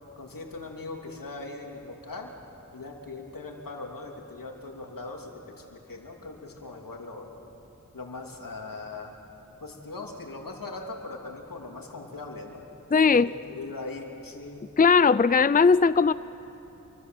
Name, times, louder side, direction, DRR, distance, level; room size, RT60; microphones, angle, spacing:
voice 1, 0.2-2.4 2.7-7.3 7.9-9.2 9.6-12.6 13.1-14.7, left 3 dB, 85° left, 1 dB, 3.0 m, -40 dB
voice 2, 12.9-13.3 14.8-16.1, left 5 dB, 25° left, 16 dB, 0.5 m, -18 dB
27.0 x 24.5 x 7.8 m, 2.9 s
wide cardioid pair, 50°, 33 cm